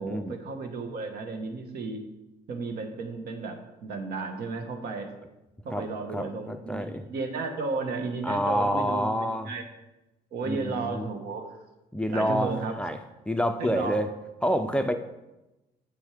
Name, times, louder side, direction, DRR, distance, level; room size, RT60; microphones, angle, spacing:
voice 1, 0.0-2.0 2.5-5.1 5.6-9.6 10.3-11.5 12.1-12.7 13.6-14.0, right 3 dB, 65° right, 5 dB, 1.4 m, -33 dB
voice 2, 6.1-7.0 8.2-9.5 10.4-11.1 11.9-12.5 12.8-13.0 13.3-14.1 14.4-14.9, equal, 5° left, 8 dB, 0.4 m, -27 dB
8.1 x 6.3 x 5.0 m, 1.0 s
cardioid pair, 110°, 17 cm